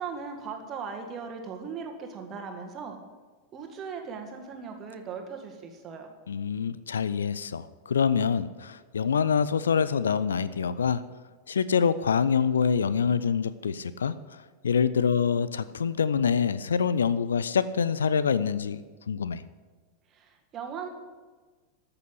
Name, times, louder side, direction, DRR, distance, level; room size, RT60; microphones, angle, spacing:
voice 1, 0.0-3.0 3.5-6.1 20.1-20.9, right 6 dB, 30° right, 3 dB, 1.9 m, -38 dB
voice 2, 6.3-11.0 11.5-18.8 19.1-19.4, left 6 dB, 70° left, 15 dB, 0.5 m, -26 dB
13.5 x 6.9 x 7.8 m, 1.4 s
figure-of-eight pair, 90°, 0 cm